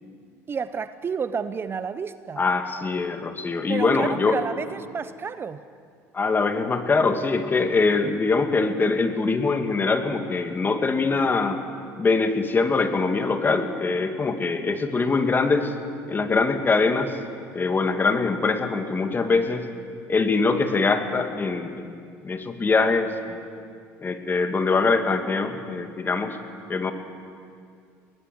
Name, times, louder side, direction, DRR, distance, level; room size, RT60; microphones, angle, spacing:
voice 1, 0.5-2.4 3.7-5.7 14.6-14.7, right 6 dB, 35° right, 13 dB, 0.8 m, -30 dB
voice 2, 2.4-4.4 6.1-11.6 12.0-15.7 16.1-17.2 17.5-19.7 20.1-21.9 22.2-23.4 24.0-26.4 26.7-26.9, left 4 dB, 30° left, 7 dB, 2.2 m, -23 dB
22.5 x 19.0 x 8.1 m, 2.3 s
supercardioid pair, 80°, 7 cm